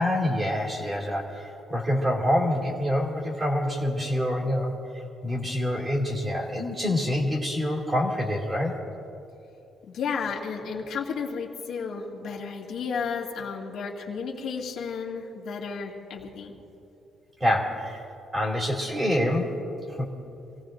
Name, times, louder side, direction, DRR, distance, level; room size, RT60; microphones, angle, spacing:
voice 1, 0.0-8.7 17.4-18.0 18.3-19.6 19.9-20.1, left 1 dB, 15° right, -2 dB, 2.5 m, -26 dB
voice 2, 9.8-16.6, left 5 dB, 55° left, -1 dB, 2.1 m, -33 dB
26.5 x 17.5 x 2.6 m, 2.8 s
cardioid pair, 170°, 0 cm